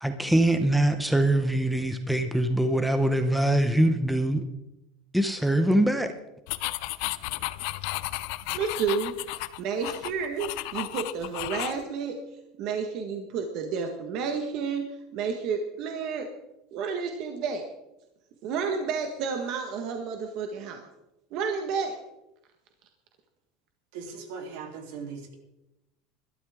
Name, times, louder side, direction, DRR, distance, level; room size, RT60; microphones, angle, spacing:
voice 1, 0.0-4.4 5.1-6.1, right 1 dB, ahead, 7 dB, 0.8 m, -23 dB
sound 1, 6.5-11.8, left 18 dB, 60° left, 0.6 m, -33 dB
voice 2, 8.5-9.1 9.6-12.2 12.6-14.9 15.1-16.3 16.7-17.6 18.4-20.9 21.3-22.0, right 5 dB, 45° right, 4 dB, 1.5 m, -30 dB
voice 3, 23.9-25.4, right 5 dB, 70° right, 3 dB, 3.2 m, -39 dB
20.5 x 12.5 x 3.7 m, 0.90 s
cardioid pair, 165°, 0 cm